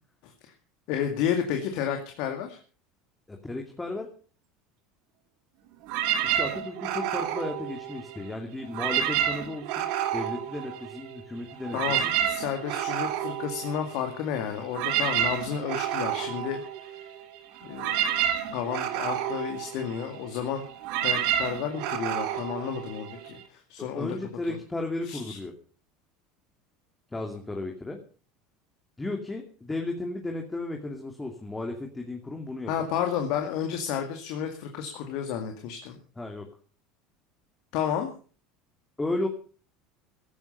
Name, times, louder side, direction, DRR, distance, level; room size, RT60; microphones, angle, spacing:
voice 1, 0.9-2.6 11.7-16.6 17.6-17.9 18.5-20.6 21.0-24.2 24.5-24.6 25.0-25.4 32.7-36.0 37.7-38.1, left 8 dB, 60° left, 4 dB, 2.2 m, -31 dB
voice 2, 3.3-4.1 6.2-12.3 23.8-25.5 27.1-28.0 29.0-32.7 36.2-36.5 39.0-39.3, left 2 dB, 15° left, 2 dB, 2.6 m, -34 dB
sound 1, 5.9-8.3 8.7-11.2 11.5-23.4, right 10 dB, 60° right, 2.3 m, -30 dB
16.0 x 12.5 x 5.5 m, 0.41 s
figure-of-eight pair, 70°, 0 cm